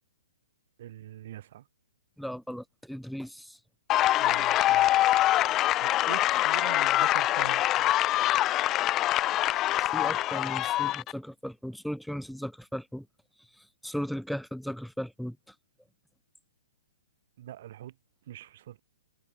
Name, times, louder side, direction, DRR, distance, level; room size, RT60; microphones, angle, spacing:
voice 1, 0.8-1.7 4.2-5.0 5.8-8.3 17.4-18.0 18.3-18.8, right 12 dB, 55° right, 3.2 m, -44 dB
voice 2, 2.2-3.6 9.9-13.1 13.4-15.4, equal, ahead, 1.6 m, -37 dB
sound 1, 3.9-11.1, left 14 dB, 25° left, 0.4 m, -24 dB
hypercardioid pair, 135°, 0 cm